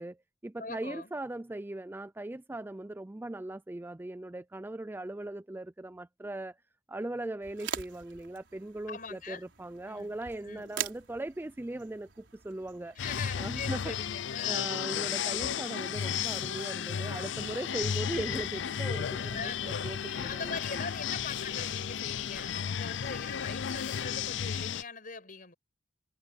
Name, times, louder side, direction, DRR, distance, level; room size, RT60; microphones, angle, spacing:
voice 1, 0.0-6.6 6.9-13.0 13.4-13.9 14.5-20.6, right 1 dB, 10° right, 0.4 m, -39 dB
voice 2, 0.6-1.1 8.9-9.4 9.9-10.2 10.4-10.7 13.0-14.7 19.2-19.9 20.2-25.5, left 5 dB, 50° left, 5.6 m, -42 dB
sound 1, 7.4-13.8, right 8 dB, 85° right, 4.5 m, -43 dB
sound 2, 13.0-24.8, left 8 dB, 80° left, 0.5 m, -34 dB
sound 3, 17.7-24.7, right 2 dB, 55° right, 1.8 m, -55 dB
head